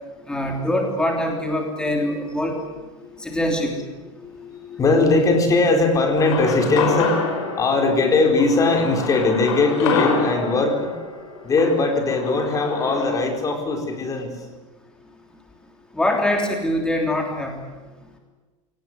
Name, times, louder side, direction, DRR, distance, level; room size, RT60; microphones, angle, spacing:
voice 1, 0.3-2.6 3.2-3.8 15.9-17.6, left 1 dB, 5° left, 2 dB, 3.2 m, -23 dB
voice 2, 4.2-10.9 11.4-14.3, left 3 dB, 20° left, 4 dB, 4.6 m, -20 dB
sound 1, 6.2-13.1, left 5 dB, 75° left, 5.8 m, -27 dB
23.0 x 18.5 x 9.7 m, 1.3 s
supercardioid pair, 140°, 16 cm